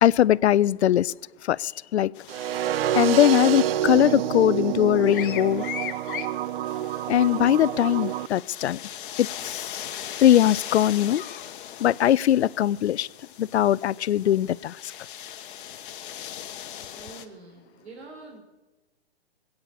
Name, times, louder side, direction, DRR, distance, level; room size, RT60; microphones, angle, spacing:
voice 1, 0.0-1.1 1.5-2.1 2.9-5.7 7.1-8.8 9.2-9.9 10.2-11.2 11.8-13.1 13.4-14.8, left 11 dB, 85° left, 23 dB, 0.5 m, -21 dB
sound 1, 2.1-17.2, left 10 dB, 55° left, 1.3 m, -39 dB
sound 2, 2.3-8.3, right 11 dB, 65° right, 0.5 m, -27 dB
voice 2, 16.9-18.4, right 3 dB, 80° right, 0 dB, 4.2 m, -45 dB
20.0 x 8.9 x 7.0 m, 1.1 s
hypercardioid pair, 140°, 32 cm